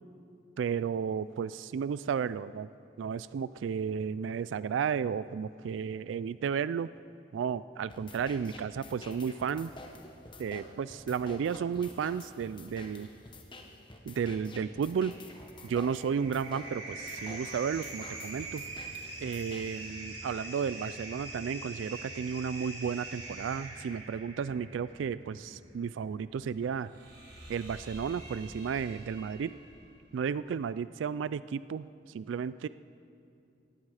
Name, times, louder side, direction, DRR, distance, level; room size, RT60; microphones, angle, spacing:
voice 1, 0.6-2.7 3.0-6.9 7.3-9.7 10.4-13.1 14.1-15.2 15.6-18.6 19.2-26.9 27.5-29.5 30.1-32.7, right 7 dB, 90° right, 16 dB, 0.3 m, -33 dB
sound 1, 7.9-19.9, left 1 dB, 25° left, 1.3 m, -49 dB
sound 2, 15.3-29.8, right 2 dB, 70° right, 5.1 m, -44 dB
17.5 x 16.0 x 4.9 m, 2.6 s
head